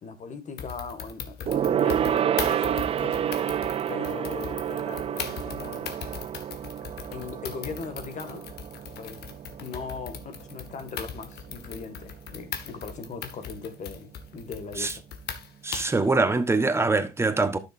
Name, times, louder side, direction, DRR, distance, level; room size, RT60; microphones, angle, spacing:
voice 1, 0.0-3.3 3.9-6.0 7.1-8.5 9.0-15.0, left 5 dB, 45° left, 1.9 m, -39 dB
sound 1, 0.6-16.0, left 7 dB, 70° left, 1.5 m, -39 dB
Gong, 1.5-11.2 11.5-11.8 12.1-12.2, right 9 dB, 35° right, 0.4 m, -29 dB
voice 2, 15.6-17.6, right 3 dB, 15° right, 1.1 m, -23 dB
12.0 x 6.7 x 2.6 m
cardioid pair, 110°, 17 cm